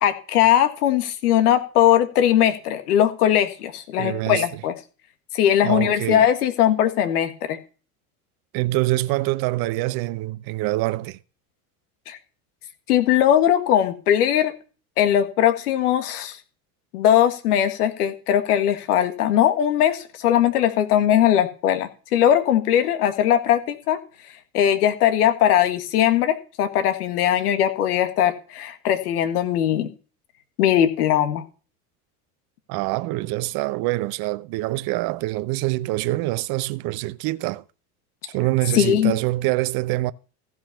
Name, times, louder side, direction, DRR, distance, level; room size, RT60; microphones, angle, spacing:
voice 1, 0.0-4.7 5.3-7.6 12.1-12.2 12.9-14.5 15.0-16.4 16.9-24.0 24.5-29.9 30.6-31.4 38.7-39.1, left 10 dB, 85° left, 1.7 m, -20 dB
voice 2, 4.0-4.6 5.6-6.3 8.5-11.2 32.7-37.6 38.3-40.1, right 19 dB, 55° right, 0.8 m, -25 dB
15.0 x 5.8 x 7.0 m
hypercardioid pair, 90°, 44 cm